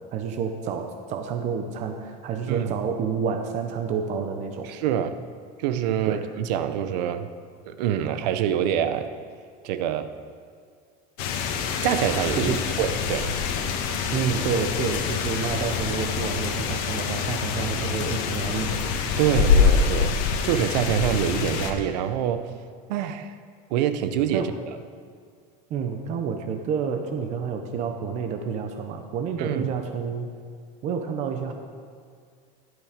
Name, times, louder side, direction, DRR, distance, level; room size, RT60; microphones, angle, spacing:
voice 1, 0.1-4.7 6.0-6.3 12.4-12.6 14.1-18.8 24.3-24.5 25.7-30.3 30.8-31.5, right 6 dB, 35° right, 5 dB, 0.8 m, -29 dB
voice 2, 4.6-5.2 5.6-7.3 7.7-9.1 9.6-10.1 11.8-13.3 19.2-20.1 20.4-22.4 22.9-23.4 23.7-24.5 29.4-29.7, right 10 dB, 85° right, 10 dB, 0.9 m, -25 dB
sound 1, 11.2-21.7, left 6 dB, 60° left, 1.3 m, -25 dB
12.5 x 11.0 x 5.1 m, 2.1 s
cardioid pair, 170°, 21 cm